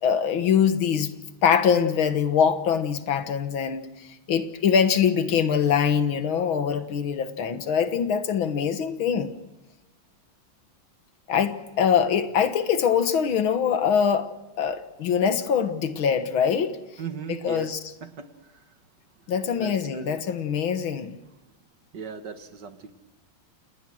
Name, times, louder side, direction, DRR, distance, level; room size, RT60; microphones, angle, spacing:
voice 1, 0.0-1.1 1.4-9.3 11.3-14.3 14.6-16.8 17.3-17.8 19.3-21.2, left 7 dB, 80° left, 10 dB, 2.2 m, -23 dB
voice 2, 17.0-17.7 18.0-18.3 19.6-20.2 21.9-22.9, right 7 dB, 60° right, 9 dB, 2.0 m, -37 dB
28.5 x 19.5 x 6.3 m, 1.1 s
omnidirectional pair, 2.2 m